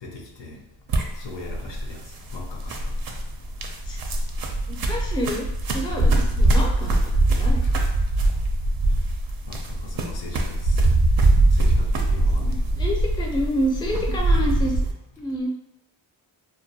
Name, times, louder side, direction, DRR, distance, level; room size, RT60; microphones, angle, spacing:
voice 1, 0.0-0.6 1.2-2.0 2.3-2.8 9.5-10.8 11.6-12.6, left 3 dB, 65° left, 1 dB, 0.6 m, -39 dB
sound 1, 0.9-14.9, right 2 dB, 50° right, 0.5 m, -22 dB
voice 2, 4.7-7.0 7.4-7.6 12.2-14.7 15.2-15.5, equal, 10° left, -1 dB, 0.5 m, -28 dB
2.2 x 2.1 x 2.7 m, 0.81 s
cardioid pair, 50°, 48 cm